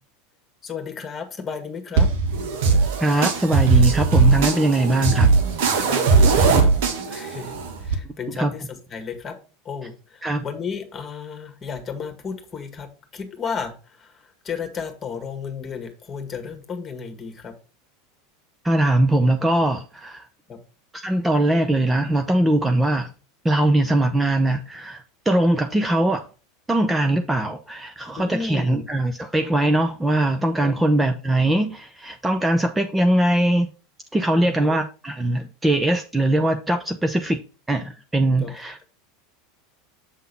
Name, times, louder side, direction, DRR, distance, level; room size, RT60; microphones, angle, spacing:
voice 1, 0.6-2.1 5.7-6.7 7.1-9.4 9.7-17.6 20.5-20.6 28.2-28.9 30.6-30.7 34.3-34.8 38.4-38.5, left 5 dB, 25° left, 1.8 m, -33 dB
sound 1, 2.0-7.9, right 4 dB, 65° right, 1.3 m, -19 dB
voice 2, 3.0-5.3 8.4-8.5 10.2-10.4 18.6-20.2 20.9-23.1 23.4-25.0 25.3-26.2 26.7-33.7 34.1-37.4 37.7-38.8, right 1 dB, 10° right, 0.7 m, -21 dB
7.1 x 3.8 x 5.5 m
hypercardioid pair, 85°, 0 cm